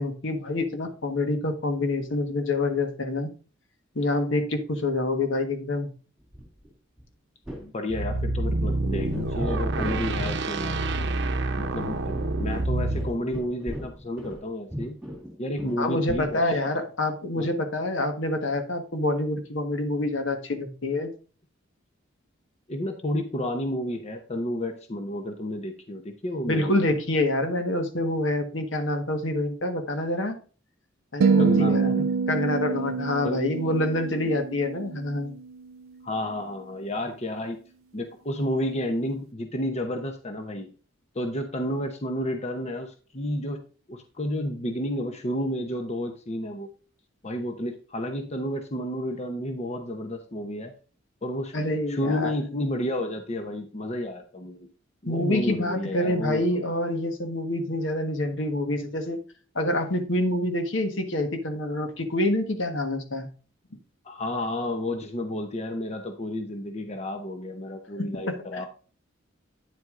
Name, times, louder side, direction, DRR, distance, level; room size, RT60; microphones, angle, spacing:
voice 1, 0.0-3.3 3.9-5.9 15.8-21.1 26.5-30.4 31.1-35.4 51.5-52.3 55.1-59.2 59.5-63.3 68.0-68.6, left 1 dB, 70° left, 6 dB, 1.4 m, -27 dB
sound 1, 6.3-6.7 7.0-7.1 7.5-7.7 8.0-8.8 9.1-10.4 10.7-10.8 11.2-11.3 11.6-11.7 12.1-14.5 14.7-16.3, equal, ahead, 2.5 m, -37 dB
voice 2, 7.6-10.8 11.6-15.0 15.4-16.7 17.4-17.6 22.7-26.7 31.4-32.1 33.2-33.4 36.0-37.6 37.9-40.7 41.1-43.6 43.9-46.7 47.2-50.7 51.2-51.5 51.9-54.7 55.0-56.4 64.0-68.7, left 1 dB, 35° left, 5 dB, 0.8 m, -31 dB
sound 2, 7.9-13.1, right 2 dB, 60° right, 0.8 m, -27 dB
sound 3, 31.2-35.5, right 5 dB, 90° right, 0.4 m, -26 dB
9.3 x 7.8 x 2.5 m, 0.37 s
head